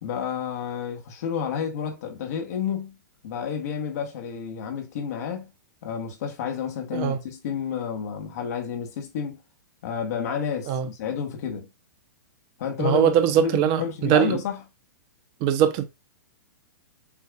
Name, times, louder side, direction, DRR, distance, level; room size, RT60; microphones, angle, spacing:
voice 1, 0.0-3.0 3.2-5.5 5.8-9.4 9.8-11.7 12.6-13.1 13.4-14.6, left 7 dB, 60° left, 1.2 m, -30 dB
voice 2, 12.8-14.4 15.4-15.8, right 9 dB, 40° right, 0.8 m, -21 dB
7.0 x 2.7 x 2.3 m
hypercardioid pair, 120°, 10 cm